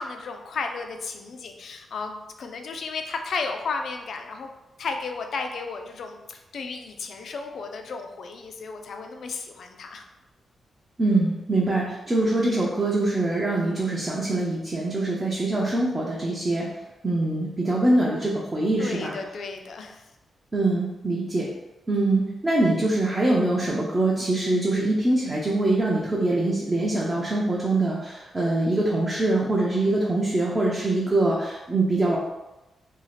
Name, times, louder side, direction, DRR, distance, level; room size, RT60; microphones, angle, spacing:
voice 1, 0.0-4.5 4.8-10.0 18.8-20.0, left 4 dB, 60° left, 5 dB, 0.3 m, -34 dB
voice 2, 11.0-16.7 17.0-19.2 20.5-21.5 21.9-32.2, right 2 dB, 20° right, -4 dB, 0.4 m, -23 dB
2.7 x 2.3 x 3.1 m, 1.0 s
wide cardioid pair, 145°, 0 cm